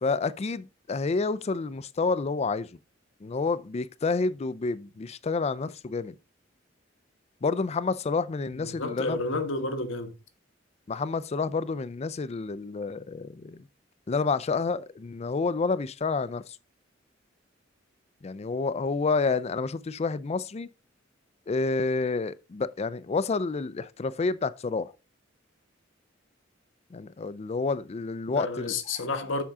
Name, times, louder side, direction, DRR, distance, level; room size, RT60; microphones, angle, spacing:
voice 1, 0.0-2.7 3.2-6.1 7.4-9.2 10.9-13.6 14.1-16.4 18.2-20.7 21.5-24.9 26.9-28.7, left 4 dB, 35° left, 0.4 m, -29 dB
voice 2, 8.5-10.1 28.3-29.4, left 3 dB, 85° left, 1.2 m, -31 dB
7.2 x 6.0 x 3.6 m
head